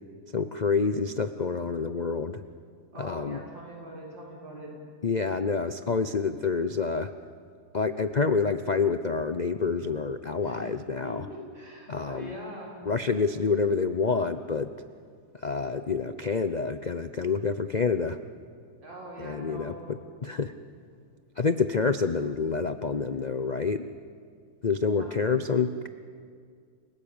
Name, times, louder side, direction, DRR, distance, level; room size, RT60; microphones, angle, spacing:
voice 1, 0.3-2.4 3.0-3.4 5.0-7.1 7.7-11.3 11.9-12.4 12.8-14.7 15.3-18.2 19.2-20.5 21.4-23.9 24.6-25.9, left 4 dB, 75° left, 10 dB, 0.4 m, -28 dB
voice 2, 2.9-4.7 10.4-10.7 11.0-12.8 18.8-19.8 25.0-25.1, equal, 80° right, -3 dB, 7.1 m, -42 dB
29.0 x 17.5 x 8.9 m, 2.1 s
omnidirectional pair, 2.0 m